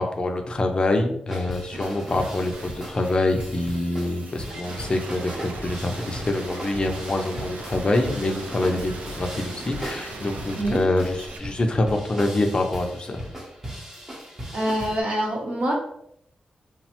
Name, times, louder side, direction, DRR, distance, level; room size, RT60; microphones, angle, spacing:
voice 1, 0.0-13.2, left 2 dB, 35° left, 4 dB, 0.4 m, -25 dB
sound 1, 1.3-15.0, equal, 15° right, 0.7 m, -37 dB
sound 2, 1.7-11.4, right 3 dB, 75° right, 0.4 m, -39 dB
voice 2, 14.5-15.7, right 1 dB, 55° right, -1 dB, 0.8 m, -25 dB
3.1 x 2.0 x 2.9 m, 0.72 s
wide cardioid pair, 95°, 3 cm